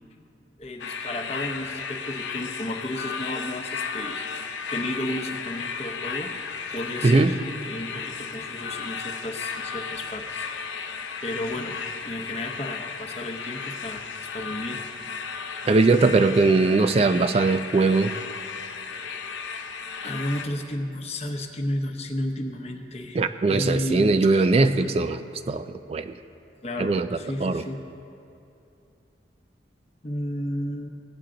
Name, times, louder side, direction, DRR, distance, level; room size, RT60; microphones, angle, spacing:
voice 1, 0.6-10.5 10.8-11.8 12.0-14.8 20.0-24.9 26.6-27.8 30.0-30.9, left 1 dB, 35° left, 3 dB, 0.9 m, -33 dB
sound 1, 0.8-20.5, left 5 dB, 90° left, 0.7 m, -34 dB
voice 2, 15.7-18.1 23.2-25.2 25.5-26.1 26.8-27.1 27.4-27.6, right 3 dB, 35° right, 10 dB, 0.3 m, -20 dB
17.5 x 8.8 x 3.8 m, 2.7 s
head